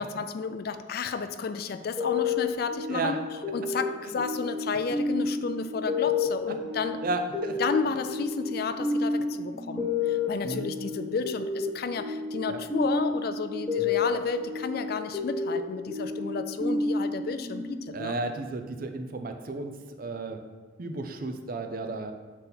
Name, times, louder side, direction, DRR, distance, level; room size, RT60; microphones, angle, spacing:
voice 1, 0.0-3.1 3.5-7.0 7.6-18.2, left 5 dB, 55° left, 10 dB, 0.4 m, -32 dB
sound 1, 2.0-18.3, left 3 dB, 20° left, 1.2 m, -31 dB
voice 2, 7.0-7.6 10.4-10.7 12.5-12.6 13.8-13.9 17.9-20.4 20.8-22.1, right 3 dB, 50° right, 6 dB, 0.5 m, -33 dB
7.4 x 4.0 x 4.0 m, 1.3 s
head